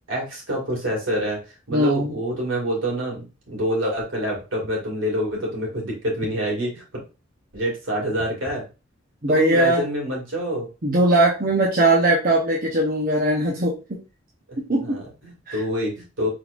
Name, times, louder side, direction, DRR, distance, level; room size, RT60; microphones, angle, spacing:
voice 1, 0.1-1.4 1.7-6.8 7.5-8.6 9.3-10.7 14.8-16.3, equal, 80° right, -2 dB, 2.2 m, -26 dB
voice 2, 1.7-2.1 9.2-9.8 10.8-14.0 14.7-15.0 15.5-15.6, right 1 dB, 45° right, -4 dB, 0.9 m, -20 dB
4.6 x 3.9 x 2.5 m, 0.30 s
head